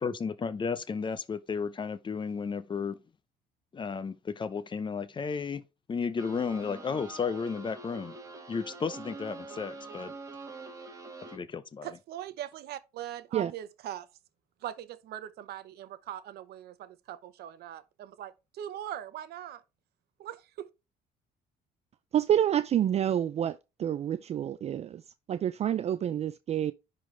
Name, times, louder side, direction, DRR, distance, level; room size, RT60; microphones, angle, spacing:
voice 1, 0.0-3.0 3.7-5.6 5.9-8.1 8.5-10.1 11.3-11.9, left 5 dB, 30° left, 0.7 m, -33 dB
sound 1, 6.2-11.4, right 3 dB, 20° right, 2.0 m, -45 dB
voice 2, 11.8-14.1 14.6-19.6 20.2-20.7, right 11 dB, 70° right, 0.8 m, -41 dB
voice 3, 22.1-25.0 25.3-26.7, right 10 dB, 40° right, 0.4 m, -28 dB
10.5 x 3.9 x 3.2 m
cardioid pair, 110°, 17 cm